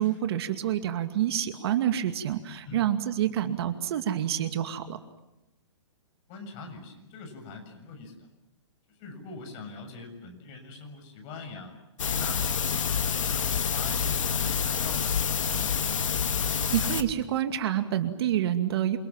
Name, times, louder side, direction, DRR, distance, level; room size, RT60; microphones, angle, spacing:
voice 1, 0.0-5.0 16.5-19.0, right 11 dB, 55° right, 7 dB, 2.4 m, -28 dB
voice 2, 6.3-8.3 8.9-11.8 12.1-15.8, left 4 dB, 35° left, 4 dB, 7.2 m, -43 dB
sound 1, 12.0-17.0, left 7 dB, 90° left, 2.4 m, -27 dB
28.5 x 26.0 x 7.5 m, 0.94 s
hypercardioid pair, 150°, 16 cm